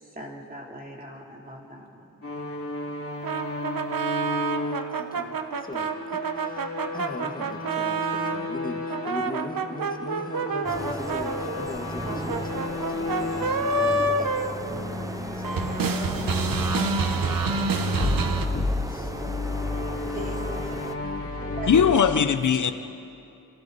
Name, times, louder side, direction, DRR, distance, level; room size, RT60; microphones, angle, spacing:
voice 1, 0.0-2.0 17.2-17.3 20.1-20.5 21.6-21.7, right 1 dB, 25° right, 3.4 m, -40 dB
sound 1, 2.2-9.3 9.6-13.7 14.3-22.0, left 3 dB, 40° left, 2.9 m, -33 dB
sound 2, 3.2-8.4 8.9-15.2 15.4-18.5, right 4 dB, 85° right, 1.1 m, -28 dB
voice 2, 4.2-21.6 22.1-22.3, left 2 dB, 25° left, 1.5 m, -41 dB
sound 3, 10.6-20.9, right 1 dB, 10° right, 0.6 m, -36 dB
voice 3, 21.7-22.7, left 7 dB, 65° left, 0.7 m, -19 dB
29.5 x 27.0 x 4.2 m
wide cardioid pair, 150°, 33 cm